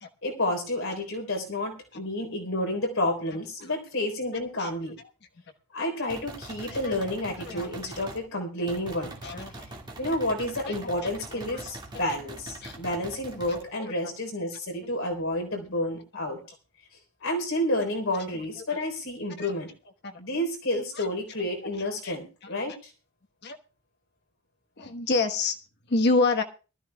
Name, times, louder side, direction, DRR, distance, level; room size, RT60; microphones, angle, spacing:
voice 1, 0.2-5.0 5.7-9.1 10.0-16.4 17.2-19.7 20.2-22.9, left 1 dB, 75° left, 3 dB, 3.8 m, -30 dB
sound 1, 6.1-8.2 8.7-13.6, right 2 dB, 20° right, 2.0 m, -43 dB
voice 2, 13.5-14.1 19.4-19.5 20.0-20.2 20.9-21.1 22.0-22.2 23.4-23.6 24.8-25.6 25.9-26.4, left 3 dB, 55° left, 6 dB, 1.2 m, -28 dB
23.0 x 13.0 x 2.3 m, 0.33 s
head